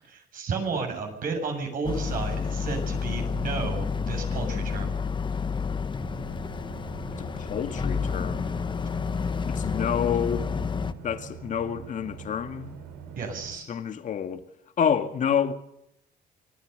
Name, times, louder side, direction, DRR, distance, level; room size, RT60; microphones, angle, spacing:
voice 1, 0.0-5.0 13.2-13.7, right 4 dB, 55° right, 7.5 m, -32 dB
Boat Water vehicle, 1.8-10.9, left 5 dB, 30° left, 1.1 m, -30 dB
sound 1, 5.9-13.6, right 7 dB, 90° right, 4.2 m, -43 dB
voice 2, 7.2-8.6 9.5-10.5 11.0-12.8 13.7-14.4 14.8-15.5, left 8 dB, 50° left, 2.1 m, -28 dB
25.5 x 18.0 x 6.9 m
cardioid pair, 110°, 17 cm